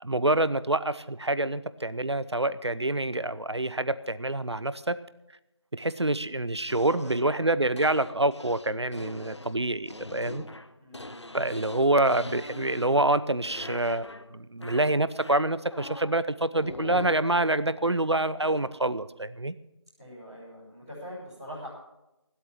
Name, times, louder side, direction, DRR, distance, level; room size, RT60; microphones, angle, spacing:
voice 1, 0.0-5.0 5.7-10.4 11.3-19.5, right 2 dB, 65° right, 16 dB, 0.8 m, -26 dB
sound 1, 6.7-13.2 13.4-14.3 14.6-16.2 16.6-17.3 18.4-18.6, left 1 dB, 70° left, 1.0 m, -42 dB
voice 2, 6.7-7.4 10.8-11.4 20.0-21.7, equal, ahead, -28 dB, 3.1 m, -43 dB
15.5 x 8.2 x 7.4 m, 0.92 s
figure-of-eight pair, 175°, 15 cm